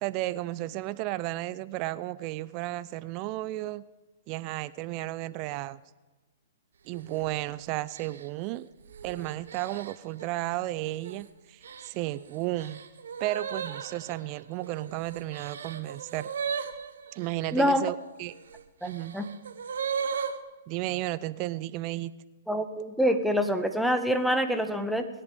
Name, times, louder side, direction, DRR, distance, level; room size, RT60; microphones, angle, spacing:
voice 1, 0.0-3.8 4.3-5.8 6.9-8.7 9.0-12.8 13.2-16.3 17.1-18.3 18.8-19.1 20.7-22.1, right 17 dB, 40° right, 17 dB, 0.5 m, -33 dB
sound 1, 6.9-7.3 7.9-10.3 10.8-11.3 11.6-17.5 18.3-20.4, right 6 dB, 70° right, 1.3 m, -37 dB
voice 2, 17.5-17.9 18.8-19.3 22.5-25.1, equal, ahead, 8 dB, 1.3 m, -26 dB
21.5 x 10.0 x 5.2 m, 1.2 s
hypercardioid pair, 120°, 0 cm